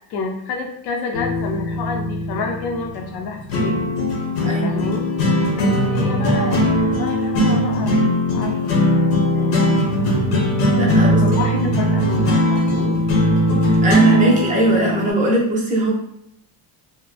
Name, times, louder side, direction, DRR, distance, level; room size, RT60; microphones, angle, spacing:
voice 1, 0.1-3.9 4.6-5.0 5.5-8.6 9.3-9.8 11.2-12.9 14.2-14.4, left 4 dB, 55° left, 2 dB, 0.5 m, -29 dB
sound 1, 1.1-15.1, equal, 80° left, 0.8 m, -19 dB
voice 2, 4.4-4.7 10.8-11.2 11.6-11.7 13.8-15.9, right 1 dB, 20° right, -4 dB, 0.3 m, -19 dB
2.5 x 2.2 x 2.3 m, 0.76 s
cardioid pair, 150°, 48 cm